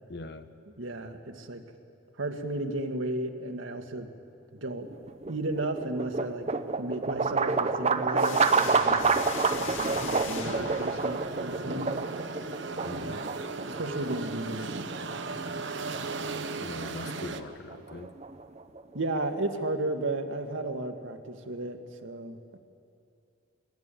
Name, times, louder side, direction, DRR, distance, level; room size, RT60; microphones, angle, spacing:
voice 1, 0.1-0.5 12.8-13.2 16.6-18.1, left 2 dB, 55° left, 9 dB, 1.1 m, -41 dB
voice 2, 0.8-1.6 2.2-4.1 4.6-4.9 5.3-6.5 6.8-9.1 9.5-11.9 12.9-13.4 13.6-14.7 18.9-22.6, right 2 dB, 80° right, 5 dB, 1.7 m, -34 dB
sound 1, 4.9-19.0, right 4 dB, 35° right, 0.8 m, -29 dB
sound 2, 8.2-11.5, left 4 dB, 75° left, 2.3 m, -39 dB
sound 3, 10.4-17.4, right 3 dB, 60° right, 1.0 m, -36 dB
21.5 x 20.0 x 9.0 m, 2.5 s
head